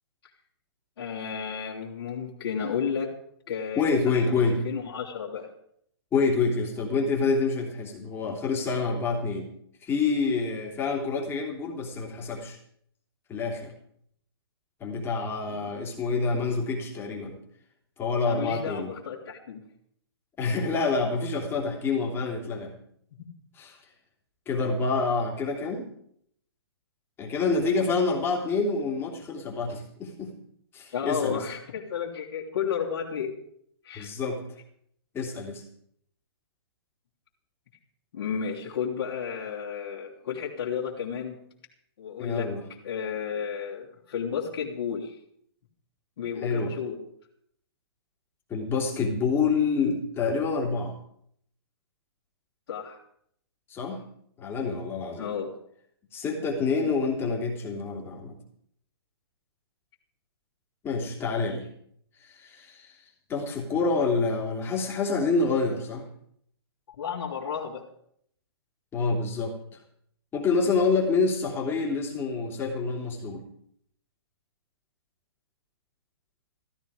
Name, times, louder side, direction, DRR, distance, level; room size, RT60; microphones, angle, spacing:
voice 1, 1.0-3.1 3.5-5.5 15.5-15.6 18.2-19.6 30.9-33.3 33.8-34.1 38.1-41.4 42.0-42.5 42.8-45.2 46.2-47.0 52.7-53.0 55.2-55.6 67.0-67.9, left 7 dB, 60° left, -5 dB, 2.9 m, -32 dB
voice 2, 3.8-4.6 6.1-9.5 9.8-12.6 13.3-13.7 14.8-17.4 18.0-18.9 20.4-22.7 23.6-23.8 24.5-25.9 27.2-30.3 30.7-31.4 33.9-34.4 35.1-35.6 42.2-42.6 46.4-46.7 48.5-50.9 53.7-54.0 54.4-55.3 56.1-58.3 60.8-61.7 62.2-63.0 63.3-66.0 68.9-69.5 70.3-73.4, left 4 dB, 15° left, -1 dB, 3.1 m, -27 dB
15.0 x 13.5 x 5.0 m, 0.69 s
hypercardioid pair, 140°, 14 cm